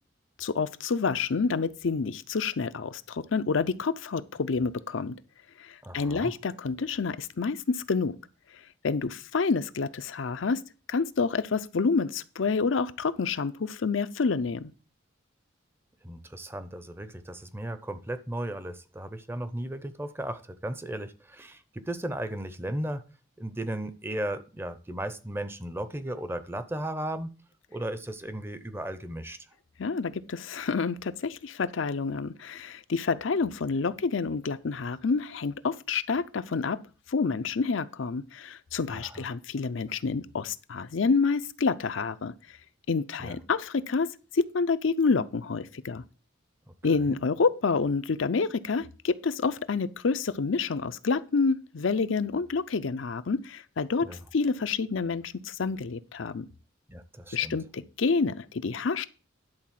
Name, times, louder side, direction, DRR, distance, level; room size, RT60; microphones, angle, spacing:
voice 1, 0.4-5.2 5.6-8.2 8.8-10.6 10.9-14.7 29.8-36.8 37.1-42.3 42.9-44.1 44.3-46.0 46.8-54.1 54.3-56.5 57.3-59.1, left 4 dB, 70° left, 0.6 m, -28 dB
voice 2, 5.8-6.3 16.0-23.0 23.4-27.3 27.7-29.4 38.9-39.3 43.2-43.4 47.1-47.2 54.0-54.2 56.9-57.6, right 1 dB, 10° right, 0.6 m, -35 dB
11.0 x 4.1 x 7.4 m
head